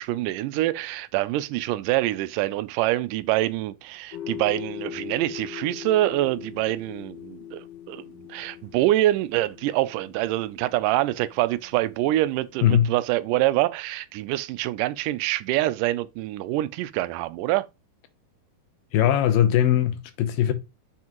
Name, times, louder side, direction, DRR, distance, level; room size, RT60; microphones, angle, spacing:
voice 1, 0.0-17.7, right 16 dB, 80° right, 2.0 m, -25 dB
sound 1, 4.1-12.6, left 11 dB, 65° left, 1.7 m, -41 dB
voice 2, 12.6-12.9 18.9-20.5, left 10 dB, 85° left, 2.7 m, -20 dB
7.3 x 5.9 x 3.0 m
omnidirectional pair, 4.0 m